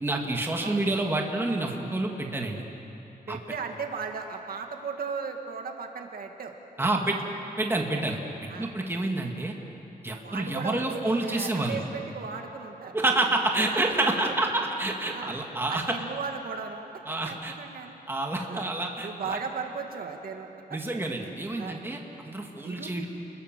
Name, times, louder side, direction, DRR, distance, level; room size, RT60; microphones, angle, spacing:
voice 1, 0.0-2.6 3.3-3.4 6.8-7.2 7.6-8.2 8.6-9.5 10.0-11.8 12.9-16.0 17.1-17.5 18.1-19.4 20.7-23.1, right 2 dB, 15° right, 1 dB, 2.1 m, -28 dB
voice 2, 3.3-7.2 8.5-8.7 10.2-13.0 13.7-14.5 15.1-15.4 15.7-18.0 18.5-18.7 19.0-20.8 21.6-21.8 22.6-23.1, right 5 dB, 65° right, 3 dB, 1.9 m, -37 dB
30.0 x 21.5 x 7.5 m, 3.0 s
wide cardioid pair, 175°, 17 cm